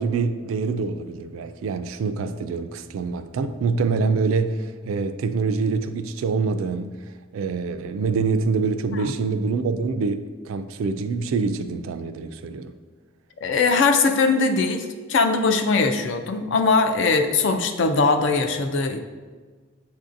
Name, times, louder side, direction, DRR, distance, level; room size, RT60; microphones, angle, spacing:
voice 1, 0.0-7.0 7.3-12.7, right 4 dB, 75° right, 0.3 m, -25 dB
voice 2, 13.4-19.0, left 4 dB, 60° left, 0.4 m, -21 dB
7.4 x 2.7 x 2.5 m
head